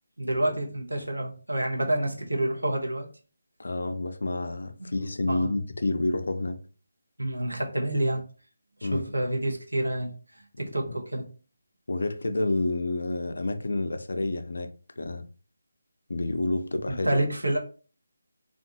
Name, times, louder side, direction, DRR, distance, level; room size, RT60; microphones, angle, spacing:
voice 1, 0.2-3.1 5.3-5.5 7.2-8.2 8.8-11.3 16.9-17.6, right 1 dB, 80° right, 0.8 m, -28 dB
voice 2, 3.6-6.6 8.8-9.1 11.9-14.7 15.0-15.2 16.1-17.2, left 2 dB, 60° left, 0.4 m, -29 dB
2.5 x 2.3 x 2.7 m
figure-of-eight pair, 155°, 0 cm